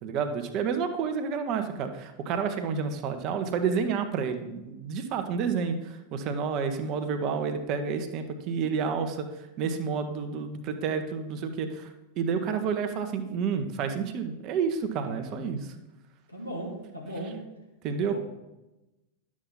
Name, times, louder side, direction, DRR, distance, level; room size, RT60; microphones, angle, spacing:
voice 1, 0.0-9.3 9.6-11.9 12.2-15.7 17.8-18.2, right 6 dB, 40° right, 7 dB, 1.0 m, -30 dB
voice 2, 15.0-15.6 16.3-17.4 18.1-18.2, equal, 85° left, -2 dB, 2.3 m, -37 dB
11.5 x 7.4 x 4.0 m, 1.0 s
figure-of-eight pair, 90°, 0 cm